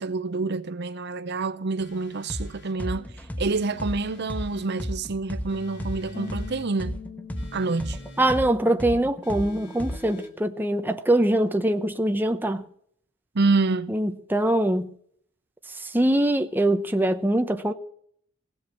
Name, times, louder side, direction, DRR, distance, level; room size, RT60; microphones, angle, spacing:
voice 1, 0.0-3.1 3.4-7.0 7.5-8.0 13.3-13.9, right 3 dB, 55° right, 0.7 m, -27 dB
sound 1, 1.8-2.8 3.5-4.7 5.5-6.7 7.4-8.4 9.2-10.3, left 1 dB, 60° left, 2.7 m, -46 dB
sound 2, 2.3-2.5 2.8-6.5 6.8-10.2, equal, 10° left, 1.1 m, -32 dB
sound 3, 2.9-9.2, left 7 dB, 80° left, 3.2 m, -47 dB
voice 2, 8.2-12.6 13.9-14.9 15.9-17.7, right 1 dB, 10° right, 0.9 m, -23 dB
16.5 x 8.0 x 7.3 m
head